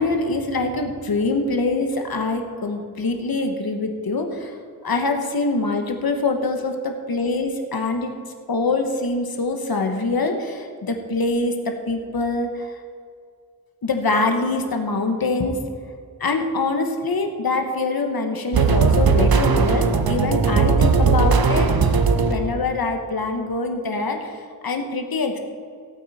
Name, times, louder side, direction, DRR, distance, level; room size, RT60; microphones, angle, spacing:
voice 1, 0.0-4.6 4.8-8.1 8.5-12.8 13.8-15.6 16.2-21.7 22.2-25.4, left 3 dB, 80° left, 4 dB, 1.3 m, -24 dB
sound 1, 18.5-22.7, right 4 dB, 80° right, 0.8 m, -18 dB
16.5 x 8.9 x 4.2 m, 2.3 s
wide cardioid pair, 90°, 36 cm